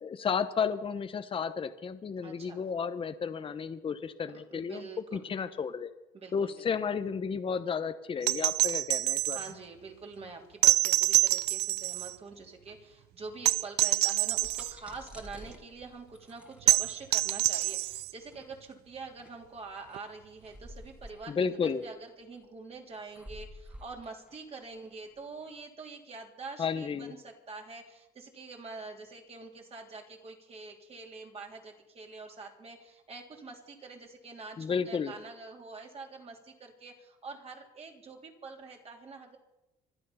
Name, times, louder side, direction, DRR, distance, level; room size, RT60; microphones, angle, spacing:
voice 1, 0.0-5.9 6.3-9.4 21.3-21.8 26.6-27.1 34.6-35.1, left 6 dB, 30° left, 10 dB, 0.9 m, -32 dB
voice 2, 2.2-2.7 4.3-5.3 6.1-6.7 9.3-39.4, right 4 dB, 35° right, 1 dB, 3.4 m, -46 dB
sound 1, 8.2-9.5 10.6-12.1 13.4-14.7 16.7-18.1 19.9-20.0, right 17 dB, 80° right, 0.4 m, -26 dB
sound 2, 14.4-25.5, equal, 5° right, 2.0 m, -51 dB
25.5 x 9.3 x 5.7 m, 0.94 s
cardioid pair, 110°, 17 cm